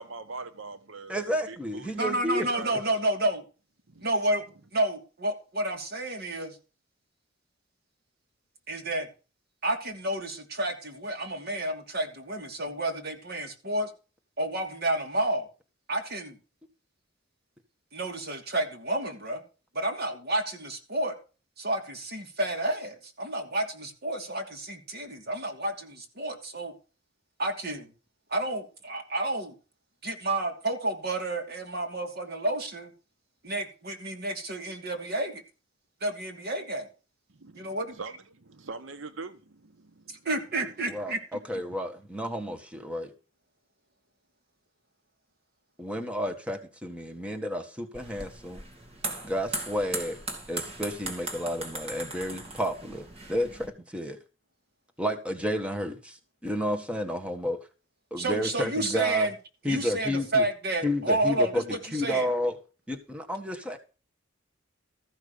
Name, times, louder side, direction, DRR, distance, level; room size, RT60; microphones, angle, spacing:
voice 1, 0.0-1.1 1.5-2.0 2.3-2.9 3.9-4.1 37.4-40.2 40.6-40.7, right 3 dB, 80° right, 1.0 m, -43 dB
voice 2, 1.1-2.5 40.9-43.1 45.8-48.6 49.2-50.2 50.5-54.2 55.0-57.6 58.1-59.3 59.6-60.4 60.8-61.6 61.9-62.6 62.9-63.8, equal, 5° right, 1.5 m, -31 dB
voice 3, 2.0-3.4 4.0-4.4 4.7-6.5 8.7-9.1 9.6-13.9 14.4-15.4 15.9-16.4 17.9-19.4 19.7-21.1 21.6-26.7 27.4-27.9 28.3-29.5 30.0-32.9 33.4-35.4 36.0-36.9 37.6-37.9 40.2-41.4 58.2-59.3 59.7-62.3, right 1 dB, 55° right, 2.8 m, -30 dB
sound 1, 47.9-53.7, right 2 dB, 30° right, 2.6 m, -38 dB
14.0 x 5.9 x 6.8 m
head